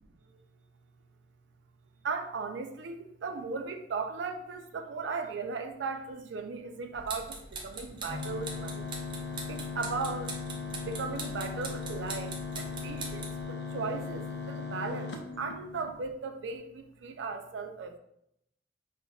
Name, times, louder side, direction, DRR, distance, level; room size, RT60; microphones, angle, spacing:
voice 1, 2.0-8.9 9.5-10.3 10.8-15.1 15.4-18.0, right 4 dB, 90° right, 5 dB, 0.4 m, -37 dB
sound 1, 6.9-13.4, right 3 dB, 30° right, 0.5 m, -42 dB
sound 2, 8.1-16.1, left 5 dB, 75° left, 0.5 m, -38 dB
5.2 x 2.2 x 2.3 m, 0.77 s
head